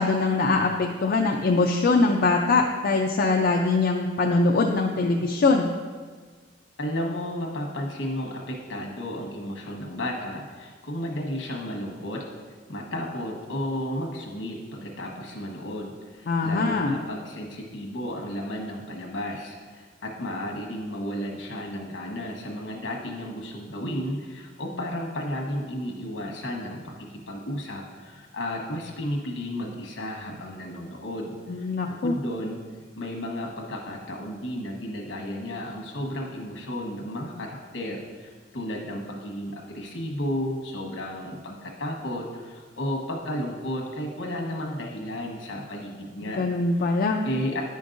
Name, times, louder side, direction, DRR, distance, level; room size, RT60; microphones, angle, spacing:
voice 1, 0.0-5.7 16.3-17.0 31.5-32.2 46.2-47.2, left 3 dB, 55° left, 1 dB, 0.4 m, -22 dB
voice 2, 6.8-12.3 12.7-32.6 33.0-46.5 47.2-47.6, left 1 dB, 75° left, 0 dB, 1.2 m, -33 dB
9.5 x 5.3 x 2.5 m, 1.5 s
head